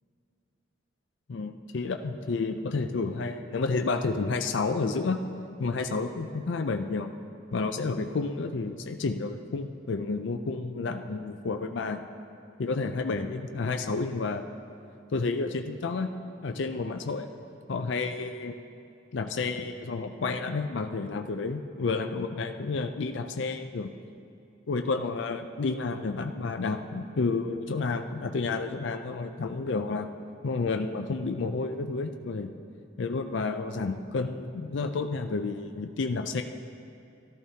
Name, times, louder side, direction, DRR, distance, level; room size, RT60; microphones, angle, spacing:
voice 1, 1.3-5.2 5.6-7.1 7.5-12.0 12.6-14.4 15.1-16.1 16.4-17.3 17.7-18.5 19.1-23.9 24.7-30.1 30.4-32.5 33.0-36.4, left 4 dB, 60° left, 6 dB, 0.4 m, -30 dB
14.0 x 12.5 x 2.8 m, 2.6 s
head